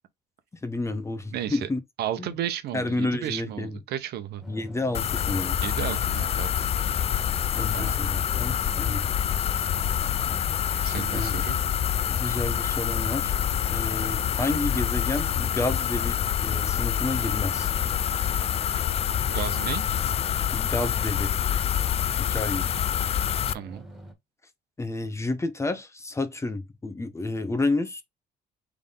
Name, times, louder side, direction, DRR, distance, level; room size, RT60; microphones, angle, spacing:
voice 1, 0.6-1.8 2.2-2.3 2.7-3.8 4.5-5.6 7.5-9.1 10.9-11.4 12.1-13.3 13.7-16.2 16.4-17.7 20.5-21.3 22.2-22.8 24.8-28.0, left 2 dB, 15° left, 0.9 m, -30 dB
voice 2, 1.3-1.7 2.0-4.4 5.6-6.6 7.7-8.0 10.8-11.6 19.3-19.8 23.5-23.8, right 11 dB, 70° right, 0.9 m, -33 dB
sound 1, 4.4-24.1, right 1 dB, ahead, 1.8 m, -45 dB
sound 2, 4.9-23.5, left 9 dB, 35° left, 0.4 m, -26 dB
3.7 x 3.6 x 3.7 m
cardioid pair, 110°, 17 cm